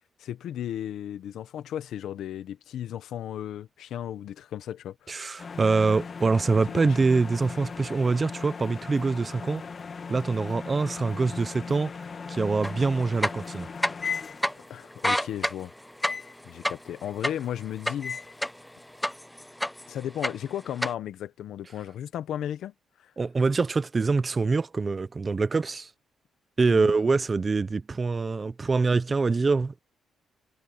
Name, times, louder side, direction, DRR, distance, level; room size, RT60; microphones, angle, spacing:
voice 1, 0.2-5.3 6.7-7.0 14.7-15.7 16.4-18.2 19.9-22.7 23.0-23.1 26.7-26.9, left 10 dB, 75° left, 1.4 m, -35 dB
voice 2, 5.1-9.6 10.1-13.7 23.2-25.9 26.6-29.8, right 4 dB, 25° right, 0.7 m, -25 dB
sound 1, 5.4-14.9 16.0-16.4 18.0-18.4, left 5 dB, 35° left, 1.8 m, -38 dB
sound 2, 12.6-12.7 13.1-14.1 14.4-14.5 14.9-18.7 19.0-19.9 20.2-20.9, left 1 dB, 5° left, 0.3 m, -28 dB
cardioid pair, 150°, 0 cm